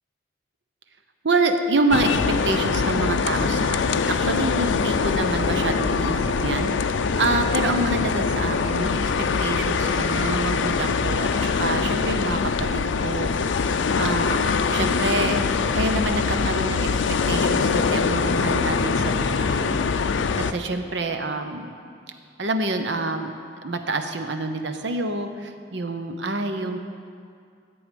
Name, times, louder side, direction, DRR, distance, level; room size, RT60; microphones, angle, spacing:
voice 1, 1.2-2.2 2.4-6.9 7.2-9.1 9.4-13.3 13.6-15.5 15.7-17.0 17.3-20.0 20.3-21.8 22.4-23.3 23.6-26.8, right 2 dB, 70° right, 6 dB, 0.8 m, -27 dB
sound 1, 1.9-20.5, left 5 dB, 80° left, 0.4 m, -23 dB
sound 2, 3.8-12.4, equal, 15° right, 0.8 m, -42 dB
sound 3, 22.3-22.4, left 2 dB, 20° left, 1.3 m, -46 dB
14.0 x 7.9 x 5.2 m, 2.3 s
head